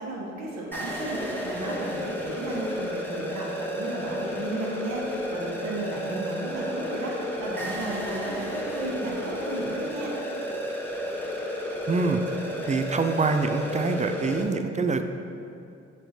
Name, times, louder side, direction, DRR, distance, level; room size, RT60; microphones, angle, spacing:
voice 1, 0.0-10.1, right 2 dB, 65° right, -5 dB, 1.3 m, -34 dB
sound 1, 0.7-14.4, equal, 5° left, 1.0 m, -32 dB
voice 2, 11.9-12.2 12.6-15.0, right 4 dB, 25° right, 7 dB, 0.4 m, -25 dB
7.6 x 4.4 x 2.9 m, 2.6 s
hypercardioid pair, 45°, 29 cm